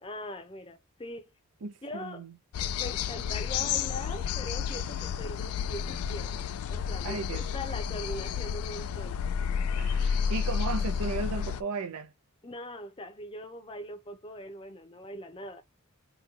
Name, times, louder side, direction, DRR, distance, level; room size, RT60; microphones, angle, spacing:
voice 1, 0.0-1.3 1.8-2.2 2.8-6.4 6.7-9.2 12.4-15.6, left 1 dB, 25° left, 0.6 m, -41 dB
voice 2, 1.6-2.3 7.0-7.5 9.8-12.1, right 4 dB, 85° right, 0.6 m, -35 dB
sound 1, 2.5-11.6, left 7 dB, 85° left, 0.3 m, -31 dB
3.0 x 2.2 x 3.7 m
head